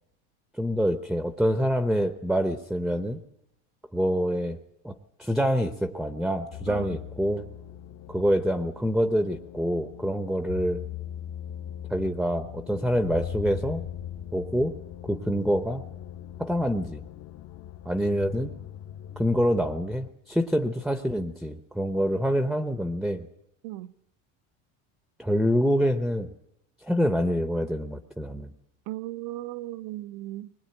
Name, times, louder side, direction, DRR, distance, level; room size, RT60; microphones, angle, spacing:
voice 1, 0.6-3.2 3.9-4.6 4.8-7.4 8.1-10.8 11.9-13.8 14.3-14.8 15.0-15.9 16.4-17.0 17.8-18.5 19.2-23.3 25.2-26.3 26.8-28.5, equal, ahead, 0.8 m, -26 dB
sound 1, 6.5-20.1, left 10 dB, 50° left, 1.2 m, -40 dB
voice 2, 6.7-7.0 23.6-23.9 28.9-30.5, right 16 dB, 65° right, 0.9 m, -36 dB
21.0 x 20.0 x 8.8 m
supercardioid pair, 130°, 37 cm